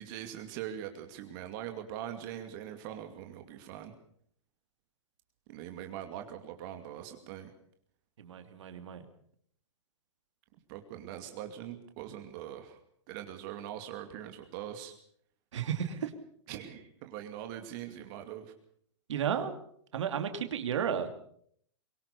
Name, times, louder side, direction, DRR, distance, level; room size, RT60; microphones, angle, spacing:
voice 1, 0.0-3.9 5.5-7.5 10.7-12.8 13.1-14.9 16.5-18.5, right 11 dB, 45° right, 6 dB, 2.5 m, -42 dB
voice 2, 8.2-9.0 15.5-16.1 19.1-19.5 19.9-21.1, right 8 dB, 70° right, 8 dB, 2.7 m, -33 dB
23.0 x 18.5 x 6.9 m, 0.65 s
hypercardioid pair, 130°, 16 cm